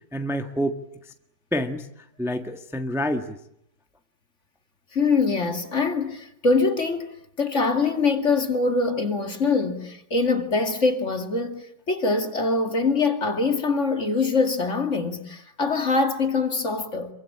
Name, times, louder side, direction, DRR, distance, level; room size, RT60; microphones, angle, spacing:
voice 1, 0.1-0.8 1.0-1.1 1.5-3.4, equal, ahead, 1.4 m, -28 dB
voice 2, 4.9-17.1, left 4 dB, 40° left, 2.6 m, -24 dB
27.5 x 24.5 x 8.7 m
omnidirectional pair, 2.0 m